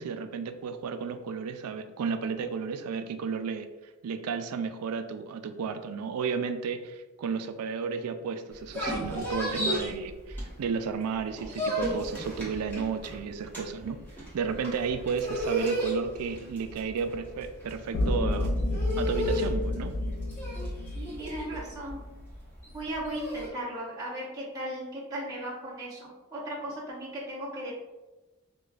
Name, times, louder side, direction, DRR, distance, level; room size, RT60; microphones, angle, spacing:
voice 1, 0.0-3.7 4.0-14.0 14.3-18.5 19.0-20.0, right 5 dB, 90° right, 9 dB, 0.3 m, -33 dB
sound 1, 8.5-10.9 11.2-23.5, equal, 10° left, 1.0 m, -34 dB
sound 2, 17.9-22.3, left 1 dB, 75° left, 0.5 m, -30 dB
voice 2, 20.9-22.0 22.7-27.7, right 1 dB, 15° right, -8 dB, 0.8 m, -36 dB
4.9 x 2.3 x 2.4 m, 1.1 s
head